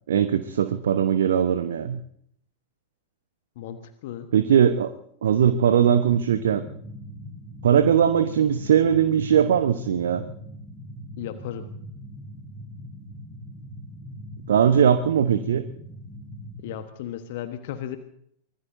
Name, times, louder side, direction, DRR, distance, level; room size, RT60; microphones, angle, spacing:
voice 1, 0.1-2.0 4.3-4.9 5.2-6.6 7.6-10.2 14.5-15.6, right 8 dB, 65° right, 10 dB, 1.0 m, -20 dB
voice 2, 3.6-4.3 11.2-11.7 16.6-18.0, left 11 dB, 50° left, 9 dB, 1.3 m, -35 dB
sound 1, 5.8-16.8, equal, 10° left, 5.9 m, -41 dB
24.5 x 21.0 x 2.8 m, 0.67 s
figure-of-eight pair, 90°, 0 cm